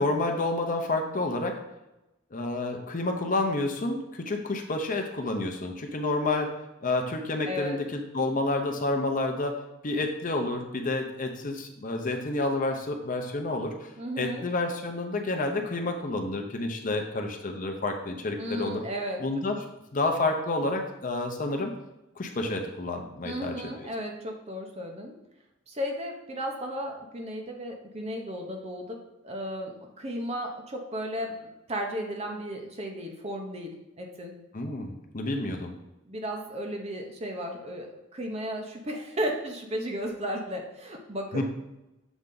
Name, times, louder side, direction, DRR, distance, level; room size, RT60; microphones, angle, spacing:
voice 1, 0.0-1.6 2.3-6.5 6.8-9.5 9.8-13.9 14.2-18.8 19.2-19.6 19.9-21.7 22.2-23.7 34.5-35.8 41.3-41.4, left 2 dB, 40° left, 4 dB, 0.7 m, -29 dB
voice 2, 7.4-7.8 14.0-14.5 18.4-19.2 23.2-25.2 25.7-34.4 36.0-41.4, equal, 30° right, 2 dB, 0.9 m, -34 dB
7.1 x 3.9 x 3.8 m, 0.95 s
head